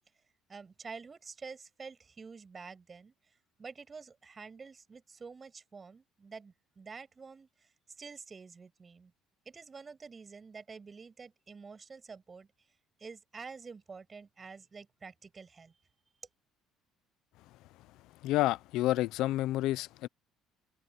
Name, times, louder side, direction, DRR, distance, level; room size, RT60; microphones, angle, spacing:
voice 1, 0.5-3.1 3.6-7.7 8.0-9.1 9.5-12.5 13.0-15.7, right 5 dB, 20° right, 7.2 m, -48 dB
voice 2, 18.2-20.1, left 16 dB, 70° left, 0.6 m, -29 dB
open air
cardioid pair, 145°, 0 cm